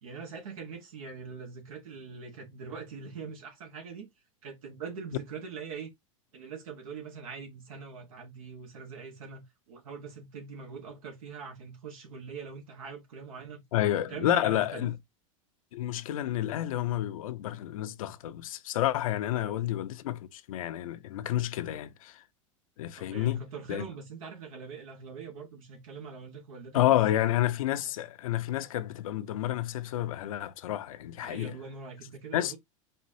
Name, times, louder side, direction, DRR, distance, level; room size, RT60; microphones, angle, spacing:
voice 1, 0.0-4.1 4.4-5.9 6.3-13.6 14.1-14.9 19.3-19.6 23.0-27.0 31.2-32.6, right 5 dB, 80° right, 1.5 m, -43 dB
voice 2, 13.7-15.0 15.7-22.2 22.8-23.4 23.7-23.8 26.7-31.5 32.3-32.5, left 13 dB, 80° left, 0.7 m, -30 dB
4.3 x 4.2 x 2.6 m
hypercardioid pair, 120°, 17 cm